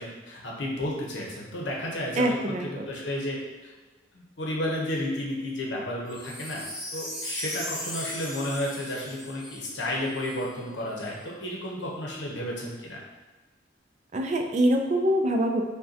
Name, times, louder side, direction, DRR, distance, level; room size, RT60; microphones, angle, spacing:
voice 1, 0.0-2.4 2.6-3.4 3.6-3.7 4.1-6.6 6.9-13.0, left 1 dB, 75° left, -2 dB, 0.9 m, -32 dB
voice 2, 2.2-2.9 14.1-15.6, right 1 dB, 40° right, 4 dB, 0.4 m, -24 dB
Wind chime, 6.1-10.4 11.0-11.1, equal, 5° right, 1.2 m, -37 dB
5.4 x 2.2 x 2.8 m, 1.3 s
head